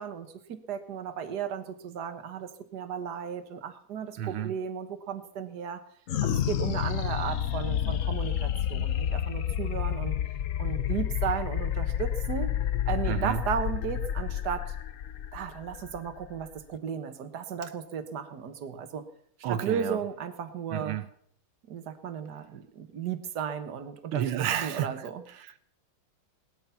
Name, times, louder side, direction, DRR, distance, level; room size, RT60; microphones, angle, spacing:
voice 1, 0.0-5.8 6.2-10.2 10.6-12.5 12.9-14.7 15.3-19.0 19.5-21.0 21.7-24.2 24.6-25.2, right 7 dB, 55° right, 1.7 m, -35 dB
voice 2, 4.2-4.6 13.1-13.4 19.4-20.0 20.7-21.1 24.1-25.6, right 10 dB, 80° right, 1.7 m, -31 dB
sound 1, 6.1-16.8, left 10 dB, 75° left, 0.7 m, -30 dB
19.0 x 12.5 x 5.8 m
omnidirectional pair, 2.3 m